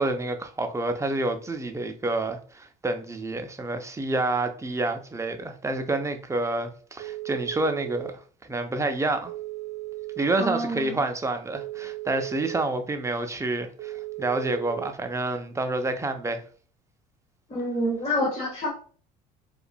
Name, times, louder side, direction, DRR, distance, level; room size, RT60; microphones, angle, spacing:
voice 1, 0.0-8.1 8.4-9.3 10.2-16.4, right 2 dB, 15° right, 0.6 m, -28 dB
Telephone, 7.0-8.1 9.3-10.4 11.5-12.6 13.8-14.9, right 19 dB, 50° right, 0.7 m, -36 dB
voice 2, 10.4-11.0 17.5-18.7, equal, 30° left, 1.1 m, -27 dB
4.7 x 2.5 x 2.2 m
supercardioid pair, 80°, 20 cm